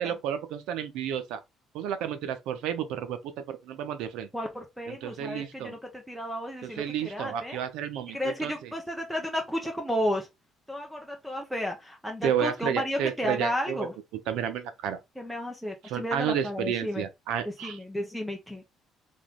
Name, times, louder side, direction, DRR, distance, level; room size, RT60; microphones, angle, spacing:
voice 1, 0.0-1.4 1.7-3.2 3.5-4.3 4.9-5.7 6.6-8.7 12.2-13.9 14.3-15.0 15.8-17.8, right 9 dB, 85° right, 0.8 m, -31 dB
voice 2, 4.3-7.6 8.1-10.3 10.7-13.9 15.2-17.1 17.4-18.7, equal, ahead, 0.9 m, -33 dB
3.7 x 3.0 x 3.8 m
cardioid pair, 125°, 0 cm